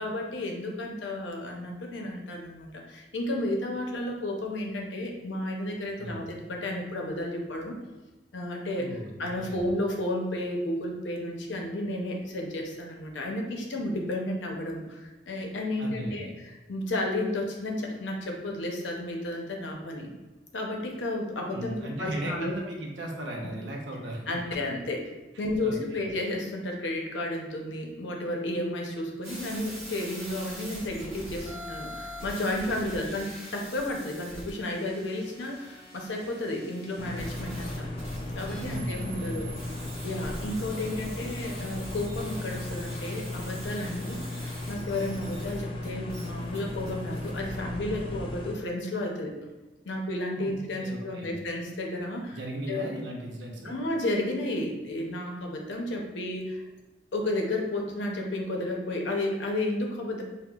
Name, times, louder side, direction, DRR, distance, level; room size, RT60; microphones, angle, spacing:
voice 1, 0.0-7.8 8.3-8.9 9.2-16.3 16.7-20.1 20.5-22.6 24.3-25.1 25.4-37.9 38.3-39.5 40.0-44.4 44.7-49.4 49.8-52.4 52.7-52.9 53.6-56.6 57.1-60.2, left 1 dB, 90° left, 1 dB, 0.7 m, -32 dB
voice 2, 8.8-9.7 15.8-16.4 21.5-24.4 25.6-26.0 33.0-33.1 38.5-39.5 50.4-50.5 50.8-51.4 52.3-53.8, right 1 dB, 85° right, 0 dB, 0.7 m, -37 dB
sound 1, 29.2-47.6, equal, 15° right, 1.3 m, -44 dB
sound 2, 37.0-48.6, left 1 dB, 30° left, 0.3 m, -36 dB
5.4 x 2.1 x 2.3 m, 1.1 s
head